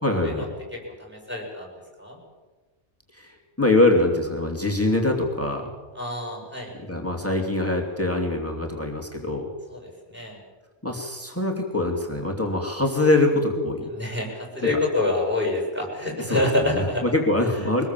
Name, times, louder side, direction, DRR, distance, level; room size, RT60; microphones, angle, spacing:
voice 1, 0.0-0.6 3.1-5.7 6.7-9.5 10.8-13.9 16.3-17.9, left 2 dB, 10° left, 1 dB, 2.7 m, -24 dB
voice 2, 0.7-1.7 2.0-2.2 5.9-6.7 9.7-10.4 13.9-17.0, left 2 dB, 10° right, 0 dB, 7.9 m, -27 dB
23.5 x 20.5 x 7.6 m, 1.3 s
omnidirectional pair, 1.2 m